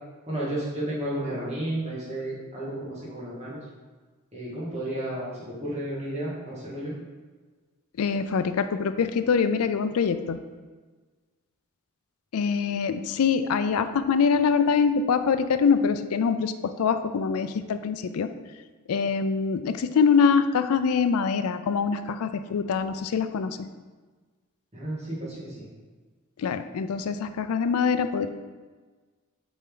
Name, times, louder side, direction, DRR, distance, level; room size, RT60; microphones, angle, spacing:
voice 1, 0.3-3.6 4.3-6.9 24.7-25.7, right 1 dB, 30° right, -7 dB, 2.0 m, -32 dB
voice 2, 8.0-10.4 12.3-18.3 18.9-23.6 26.4-28.3, left 6 dB, 85° left, 10 dB, 0.4 m, -24 dB
7.1 x 4.2 x 3.8 m, 1.4 s
head